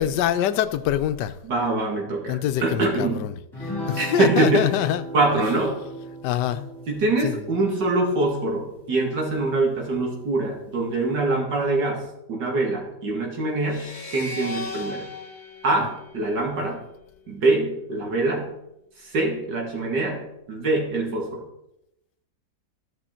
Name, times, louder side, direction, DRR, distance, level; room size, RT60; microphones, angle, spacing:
voice 1, 0.0-1.4 2.3-3.3 3.6-5.0 6.2-6.7 7.2-7.5, left 11 dB, 85° left, 12 dB, 1.2 m, -25 dB
voice 2, 1.4-2.4 2.6-3.2 4.0-4.7 5.1-5.8 6.9-12.0 12.3-15.0 15.6-16.8 17.3-18.5 19.0-21.4, right 2 dB, 80° right, 0 dB, 2.7 m, -24 dB
sound 1, 3.5-9.2, equal, 15° left, 3.7 m, -37 dB
sound 2, 13.6-16.9, left 3 dB, 30° left, 1.1 m, -37 dB
13.5 x 6.0 x 4.4 m, 0.83 s
omnidirectional pair, 1.8 m